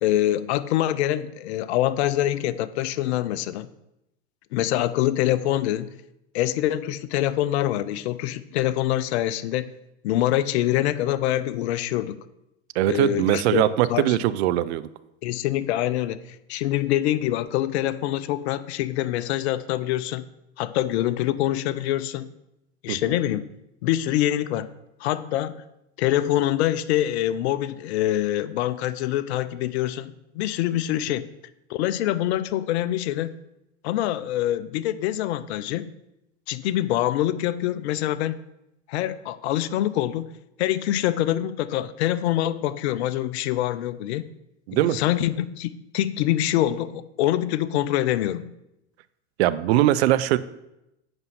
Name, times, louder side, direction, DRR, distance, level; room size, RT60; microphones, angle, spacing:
voice 1, 0.0-3.7 4.5-5.9 6.3-9.7 10.0-12.2 12.9-14.2 15.2-16.2 16.5-20.2 20.6-22.3 22.8-23.5 23.8-24.7 25.0-25.6 26.0-31.3 31.7-33.3 33.8-35.9 36.5-38.4 38.9-40.3 40.6-44.3 44.7-48.5, left 13 dB, 70° left, 15 dB, 0.6 m, -25 dB
voice 2, 12.8-14.9 22.9-23.2 44.7-45.0 49.4-50.4, right 14 dB, 65° right, 15 dB, 0.6 m, -21 dB
7.9 x 5.4 x 5.7 m, 0.88 s
hypercardioid pair, 100°, 35 cm